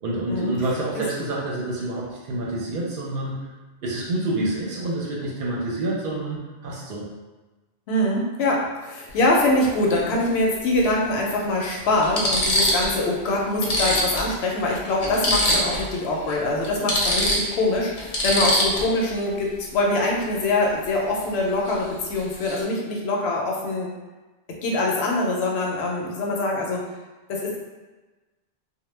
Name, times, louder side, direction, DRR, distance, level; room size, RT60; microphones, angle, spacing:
voice 1, 0.0-3.4 3.8-7.0, right 2 dB, 65° right, -4 dB, 0.7 m, -28 dB
voice 2, 7.9-23.9 24.6-26.8 27.3-27.6, left 2 dB, 80° left, -2 dB, 0.8 m, -24 dB
sound 1, 9.1-9.3 10.8-10.9 11.5-11.6 12.0-13.0 13.3-13.4 13.6-15.9 16.2-16.3 16.6-19.1 21.7-21.9 22.2-22.6, equal, 50° left, 0.5 m, -23 dB
2.1 x 2.0 x 3.1 m, 1.2 s
omnidirectional pair, 1.1 m